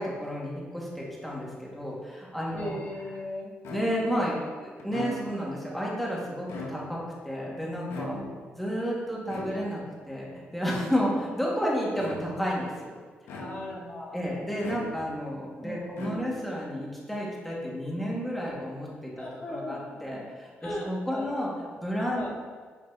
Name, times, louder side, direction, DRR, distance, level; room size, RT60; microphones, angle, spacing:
voice 1, 0.0-2.8 3.7-4.4 4.6-8.2 8.6-12.7 14.1-21.5 21.8-22.3, equal, 5° left, -5 dB, 1.8 m, -31 dB
voice 2, 2.5-3.5 8.0-8.4 13.4-14.2 15.6-16.0 19.1-20.2 20.6-21.3 22.1-22.3, left 1 dB, 40° left, -3 dB, 1.5 m, -38 dB
sound 1, 3.6-4.2 4.8-5.5 6.4-7.1 7.9-8.6 9.3-9.9 10.6-11.2 11.9-12.5 13.3-13.9 14.6-15.3 15.9-16.6, left 2 dB, 90° left, 0.9 m, -40 dB
8.1 x 5.0 x 2.8 m, 1.6 s
cardioid pair, 95°, 4 cm